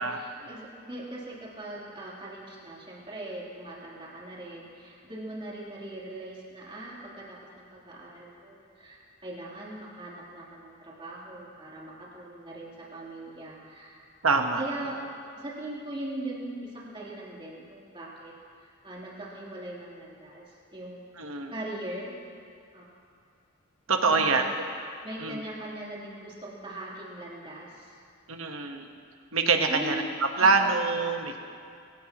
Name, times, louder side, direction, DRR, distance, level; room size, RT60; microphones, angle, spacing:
voice 1, 0.0-14.1 14.5-15.0 15.4-18.3 18.6-21.0 21.5-22.1 22.7-22.8 24.1-24.5 25.0-28.0 29.7-30.0 30.4-30.7, right 1 dB, 25° right, -6 dB, 3.6 m, -40 dB
voice 2, 14.2-14.6 21.2-21.5 23.9-24.4 25.2-25.4 28.3-28.9 29.3-31.4, right 4 dB, 80° right, 4 dB, 1.4 m, -25 dB
25.0 x 16.5 x 3.1 m, 2.3 s
head